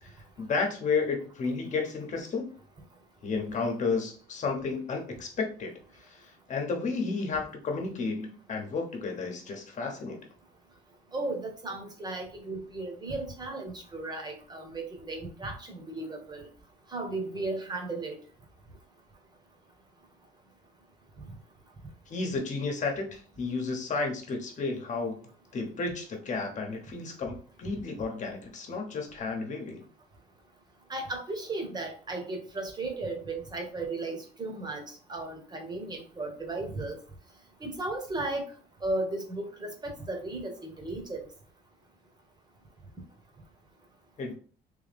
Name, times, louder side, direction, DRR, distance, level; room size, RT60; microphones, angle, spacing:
voice 1, 0.0-2.5 3.2-5.7 6.0-10.3 22.1-25.2 25.5-29.8 44.2-44.4, left 4 dB, 45° left, 3 dB, 1.2 m, -32 dB
voice 2, 11.1-16.5 16.9-18.1 30.9-34.8 35.1-37.0 37.6-38.4 38.8-41.3, right 2 dB, 25° right, 3 dB, 1.3 m, -35 dB
3.5 x 3.1 x 3.5 m, 0.41 s
cardioid pair, 110°, 17 cm